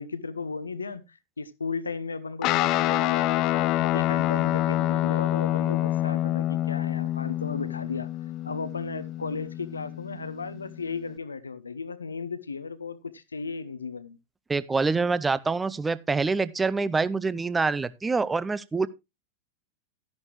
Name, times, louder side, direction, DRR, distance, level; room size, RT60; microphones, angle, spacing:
voice 1, 0.0-8.1 8.4-14.2, left 4 dB, 75° left, 0.8 m, -35 dB
Guitar, 2.4-11.2, left 14 dB, 40° left, 0.5 m, -27 dB
voice 2, 14.5-18.9, right 4 dB, 10° right, 0.6 m, -26 dB
12.5 x 10.5 x 3.1 m
figure-of-eight pair, 90°, 0 cm